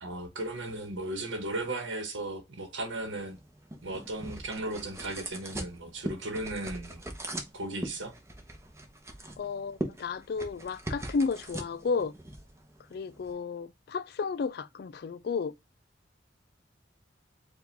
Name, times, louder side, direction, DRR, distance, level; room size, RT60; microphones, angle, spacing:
voice 1, 0.0-3.4 3.8-7.0 7.5-8.1, right 2 dB, 85° right, 1.1 m, -36 dB
sound 1, 3.1-13.3, right 1 dB, 15° right, 0.8 m, -41 dB
voice 2, 9.4-12.1 12.9-15.5, left 5 dB, 55° left, 0.3 m, -32 dB
4.9 x 2.4 x 3.3 m
head